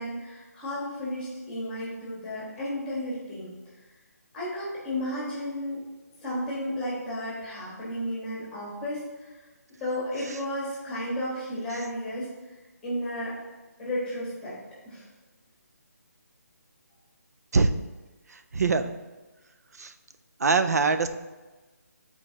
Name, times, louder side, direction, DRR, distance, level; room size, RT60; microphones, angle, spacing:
voice 1, 0.0-3.6 4.3-5.8 6.2-9.3 9.8-12.3 12.8-13.4 13.8-14.5 14.8-15.0, left 1 dB, 5° left, -7 dB, 1.5 m, -33 dB
voice 2, 18.3-19.0 19.8-19.9 20.4-21.1, right 4 dB, 70° right, 9 dB, 0.6 m, -23 dB
10.5 x 4.3 x 2.9 m, 1.2 s
hypercardioid pair, 170°, 9 cm